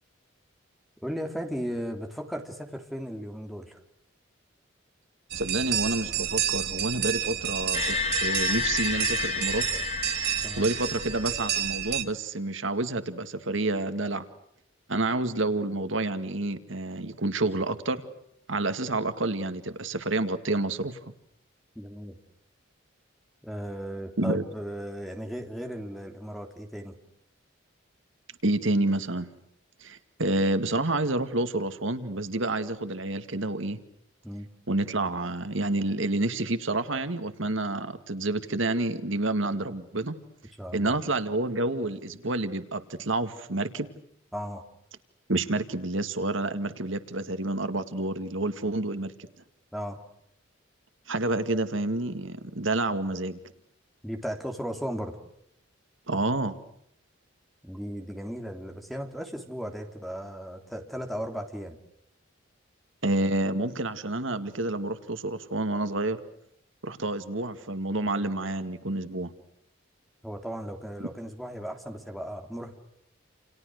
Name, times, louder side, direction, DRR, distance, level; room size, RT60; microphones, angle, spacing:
voice 1, 1.0-3.8 10.4-10.7 21.8-22.2 23.4-27.0 34.2-34.5 40.6-41.0 44.3-44.6 49.7-50.0 54.0-55.2 57.6-61.8 68.0-68.3 70.2-72.7, equal, ahead, 4 dB, 3.4 m, -36 dB
sound 1, 5.3-12.0, right 10 dB, 50° right, 2.0 m, -30 dB
voice 2, 5.3-9.6 10.6-14.2 14.9-18.0 18.5-21.0 24.2-24.4 28.4-29.3 29.8-33.8 34.7-40.2 40.7-43.9 45.3-49.1 51.1-53.4 56.1-56.6 63.0-66.2 66.8-69.3, right 2 dB, 70° right, 9 dB, 2.1 m, -29 dB
sound 2, 7.7-11.5, left 6 dB, 35° left, 2.8 m, -31 dB
29.5 x 29.5 x 6.5 m, 0.74 s
head